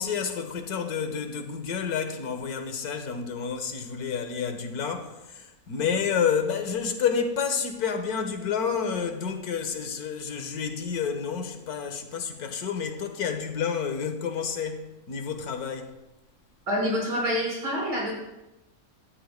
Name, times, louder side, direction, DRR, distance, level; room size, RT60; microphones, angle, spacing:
voice 1, 0.0-15.9, left 6 dB, 80° left, 1.6 m, -29 dB
voice 2, 16.7-18.1, equal, 75° right, 5.5 m, -27 dB
17.0 x 13.0 x 2.2 m
omnidirectional pair, 1.6 m